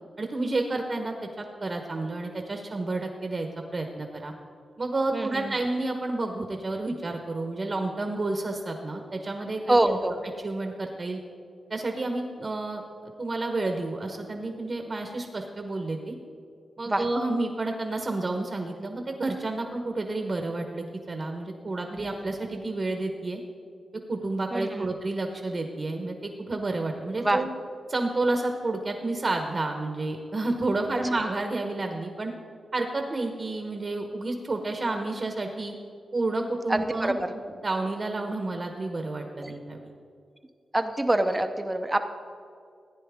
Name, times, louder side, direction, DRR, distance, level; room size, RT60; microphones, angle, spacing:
voice 1, 0.2-4.3 4.8-10.0 10.4-11.2 11.7-16.1 16.8-23.4 24.1-27.5 27.9-32.3 32.7-35.7 36.1-37.2 37.6-39.9, right 2 dB, 40° right, 4 dB, 1.0 m, -30 dB
voice 2, 5.1-5.6 9.7-10.2 16.9-17.0 21.9-22.1 24.5-24.9 27.2-27.4 36.7-37.3 39.3-39.5 40.7-42.0, right 1 dB, 15° right, 8 dB, 0.7 m, -25 dB
15.0 x 9.6 x 3.6 m, 2.3 s
wide cardioid pair, 100°, 0 cm